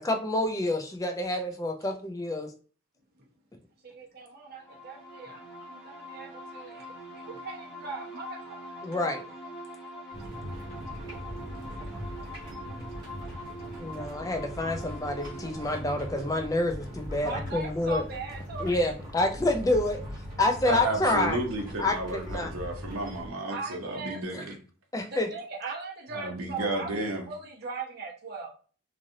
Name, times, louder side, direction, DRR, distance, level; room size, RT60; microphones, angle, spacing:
voice 1, 0.0-2.5 8.8-9.2 13.8-18.0 18.6-20.0 20.4-21.4 21.8-22.0 22.3-22.5 24.3-24.4 24.9-25.3, left 2 dB, 15° left, 4 dB, 0.4 m, -28 dB
voice 2, 3.8-8.8 10.8-10.9 11.3-11.6 13.8-14.0 17.2-18.9 23.5-24.2 25.1-28.5, right 4 dB, 45° right, -3 dB, 0.9 m, -40 dB
sound 1, 4.6-18.1, equal, ahead, 0.7 m, -44 dB
sound 2, 10.1-23.3, equal, 20° right, 1.5 m, -40 dB
voice 3, 20.7-24.6 26.1-27.3, right 2 dB, 85° right, 2 dB, 0.7 m, -32 dB
3.1 x 2.5 x 2.6 m, 0.39 s
head